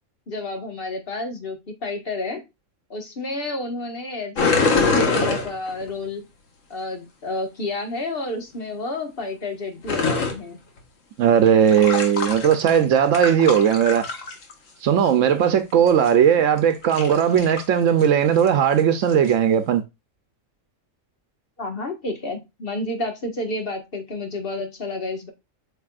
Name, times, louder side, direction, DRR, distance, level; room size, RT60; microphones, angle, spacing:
voice 1, 0.3-2.4 2.9-6.2 6.7-10.6 16.0-16.1 21.6-25.3, left 2 dB, 45° left, 1.8 m, -30 dB
sound 1, 4.4-5.9 9.8-10.4 11.5-12.8 13.1-14.5 15.9-16.1 16.7-17.6 18.0-18.1 18.4-18.5 19.1-19.3, left 4 dB, 90° left, 1.8 m, -23 dB
voice 2, 11.2-14.1 14.8-19.8, right 8 dB, 85° right, 1.0 m, -18 dB
8.2 x 5.3 x 2.4 m
omnidirectional pair, 1.3 m